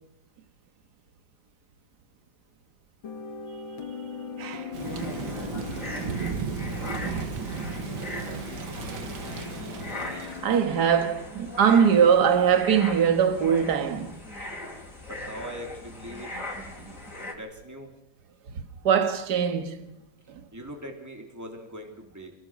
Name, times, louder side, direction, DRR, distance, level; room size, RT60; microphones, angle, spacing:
sound 1, 3.0-10.8, left 5 dB, 80° left, 2.7 m, -40 dB
voice 1, 4.4-4.7 10.4-14.2 18.6-19.8 20.3-20.4, right 7 dB, 55° right, 1.9 m, -22 dB
Thunder / Rain, 4.7-10.5, right 6 dB, 85° right, 2.2 m, -35 dB
sound 2, 4.8-17.3, left 1 dB, 40° left, 4.1 m, -39 dB
voice 2, 15.1-16.4 17.3-17.9 20.5-22.3, equal, 10° right, 3.3 m, -40 dB
27.0 x 16.5 x 6.3 m
omnidirectional pair, 2.1 m